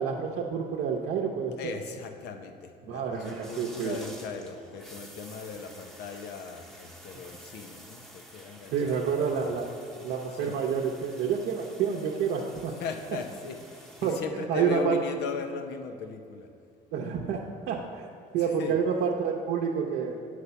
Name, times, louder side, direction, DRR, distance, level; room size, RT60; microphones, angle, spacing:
voice 1, 0.0-1.8 2.9-4.0 8.7-9.7 10.0-12.7 14.0-14.2 14.5-15.0 16.9-18.1 18.3-20.1, right 6 dB, 80° right, -2 dB, 0.7 m, -28 dB
voice 2, 1.6-9.5 10.0-10.1 10.3-10.7 12.6-16.5 18.3-18.8, left 5 dB, 75° left, 6 dB, 0.8 m, -38 dB
sound 1, 3.1-14.2, right 1 dB, ahead, 0.9 m, -50 dB
8.4 x 4.8 x 6.8 m, 2.3 s
cardioid pair, 110°, 17 cm